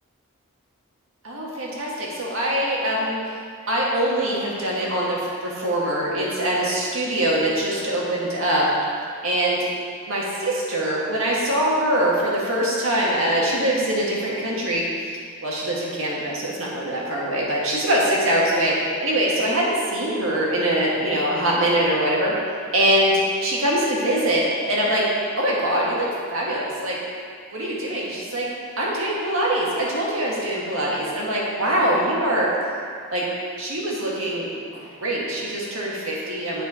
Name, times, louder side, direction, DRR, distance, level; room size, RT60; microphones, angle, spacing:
voice 1, 1.2-3.2 3.7-8.7 9.2-9.7 10.1-15.1 15.4-22.3 22.7-25.0 25.4-27.0 27.5-28.5 28.8-32.5 33.1-33.2 33.6-36.6, right 1 dB, 70° right, -4 dB, 1.6 m, -23 dB
9.2 x 4.5 x 4.3 m, 2.2 s
head